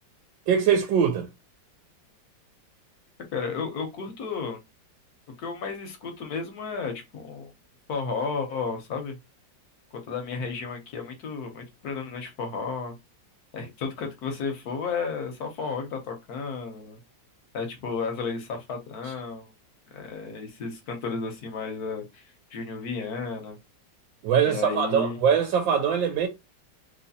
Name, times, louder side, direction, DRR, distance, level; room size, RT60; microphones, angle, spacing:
voice 1, 0.5-1.3 24.2-26.3, right 7 dB, 90° right, 1.4 m, -22 dB
voice 2, 3.3-4.6 5.4-7.5 7.9-9.2 10.1-12.9 13.5-17.0 17.5-19.5 19.9-23.6 24.5-25.2, left 5 dB, 65° left, 1.1 m, -33 dB
3.1 x 3.0 x 2.6 m
omnidirectional pair, 2.0 m